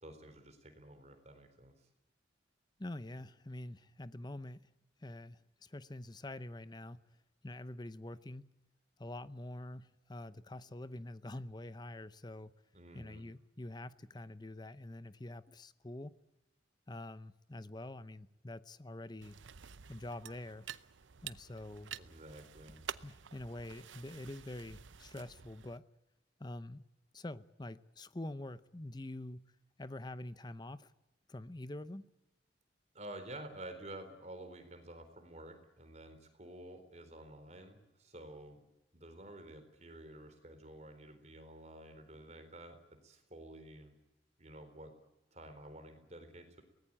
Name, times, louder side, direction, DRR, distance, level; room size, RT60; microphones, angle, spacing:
voice 1, 0.0-1.9 12.7-13.2 21.9-22.8 32.9-38.6 38.9-42.8 43.0-43.9 44.4-44.9 45.3-46.6, right 1 dB, 35° right, 4.0 m, -51 dB
voice 2, 2.8-4.7 5.0-7.0 7.4-8.5 9.0-12.5 12.9-16.2 16.9-19.4 19.9-20.7 21.2-21.9 23.0-25.8 26.4-26.8 27.1-29.5 29.8-30.9 31.3-32.0, left 1 dB, 20° left, 0.7 m, -46 dB
sound 1, 19.2-25.8, right 8 dB, 90° right, 0.7 m, -49 dB
23.0 x 19.0 x 9.0 m
head